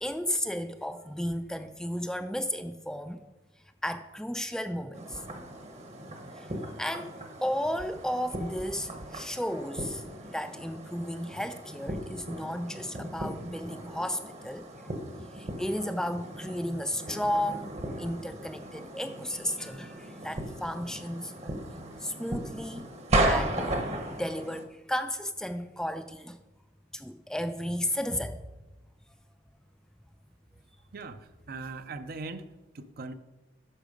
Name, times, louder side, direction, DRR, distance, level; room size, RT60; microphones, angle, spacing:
voice 1, 0.0-3.2 3.8-5.2 6.4-6.5 6.8-7.1 7.4-10.0 10.3-14.9 15.3-21.3 22.0-22.9 23.2-26.4 26.9-28.4, equal, 5° left, 0.4 m, -33 dB
sound 1, 4.9-24.6, right 1 dB, 35° right, 0.9 m, -36 dB
voice 2, 30.9-33.1, right 3 dB, 50° right, 0.5 m, -40 dB
9.8 x 6.5 x 5.1 m
head